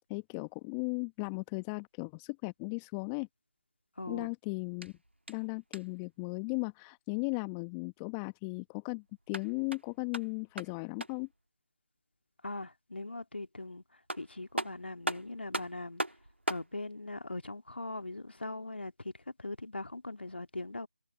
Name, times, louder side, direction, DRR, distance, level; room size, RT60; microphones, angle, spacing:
voice 1, 0.1-3.3 4.1-4.9 5.3-11.3, left 36 dB, 10° left, 1.0 m, -36 dB
voice 2, 4.0-4.3 12.4-16.0 16.5-20.9, left 2 dB, 70° left, 2.0 m, -41 dB
sound 1, 4.7-6.1 9.1-11.3 13.6-13.7 14.1-16.7, right 1 dB, 85° right, 1.4 m, -39 dB
figure-of-eight pair, 160°, 6 cm